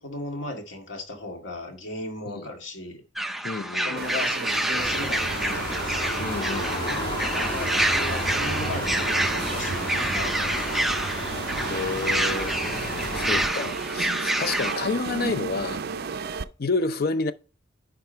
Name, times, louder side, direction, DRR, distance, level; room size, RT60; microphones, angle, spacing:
voice 1, 0.0-3.0 3.8-6.1 7.3-11.1, left 2 dB, 75° left, 2.1 m, -36 dB
sound 1, 3.2-14.8, right 1 dB, ahead, 0.5 m, -28 dB
voice 2, 3.4-4.0 6.2-7.2 11.7-15.8 16.6-17.3, left 3 dB, 55° left, 0.6 m, -30 dB
sound 2, 4.0-16.4, right 5 dB, 55° right, 0.5 m, -34 dB
sound 3, 4.8-13.5, left 1 dB, 25° left, 1.4 m, -32 dB
10.5 x 3.6 x 4.5 m
head